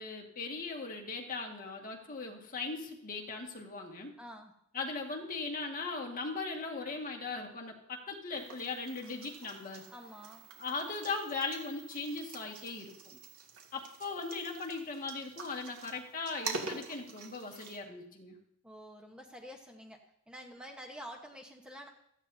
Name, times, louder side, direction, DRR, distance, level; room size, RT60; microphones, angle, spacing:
voice 1, 0.0-4.1 4.7-9.9 10.6-13.2 13.7-18.4, left 3 dB, 40° left, 1 dB, 1.9 m, -39 dB
voice 2, 4.2-4.5 9.9-10.5 18.6-21.9, equal, 5° right, 0 dB, 1.2 m, -48 dB
sound 1, 8.3-17.8, right 4 dB, 85° right, 2.2 m, -46 dB
16.5 x 14.0 x 2.8 m, 0.76 s
head